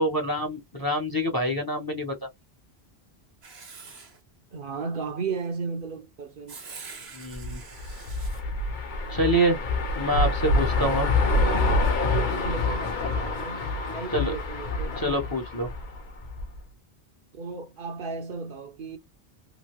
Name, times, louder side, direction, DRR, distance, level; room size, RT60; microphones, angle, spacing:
voice 1, 0.0-2.2 7.1-7.6 9.1-9.6 10.0-11.1 14.1-14.3 15.0-15.7, equal, 25° left, 0.7 m, -26 dB
Writing, 3.4-4.2 6.5-8.4, right 4 dB, 75° right, 1.3 m, -44 dB
voice 2, 4.5-6.6 7.6-7.7 11.2-15.0 17.3-19.0, right 5 dB, 60° right, 0.8 m, -35 dB
sound 1, 7.3-16.6, left 2 dB, 50° left, 0.8 m, -27 dB
3.0 x 2.6 x 2.9 m
omnidirectional pair, 1.1 m